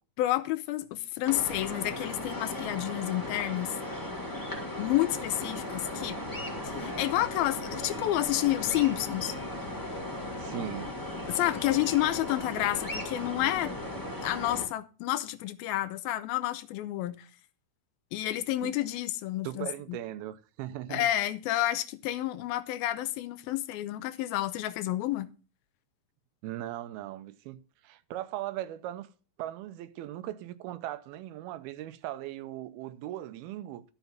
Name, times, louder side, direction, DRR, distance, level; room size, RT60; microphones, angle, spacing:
voice 1, 0.2-3.8 4.8-6.2 6.6-9.3 11.3-13.7 14.2-17.3 18.1-20.0 20.9-25.3, left 15 dB, 85° left, 2.5 m, -30 dB
sound 1, 1.2-14.7, left 1 dB, 10° left, 1.0 m, -37 dB
voice 2, 10.4-11.0 18.6-18.7 19.4-21.1 26.4-29.1 29.4-33.8, right 13 dB, 90° right, 2.7 m, -39 dB
12.0 x 5.6 x 5.7 m
omnidirectional pair, 4.3 m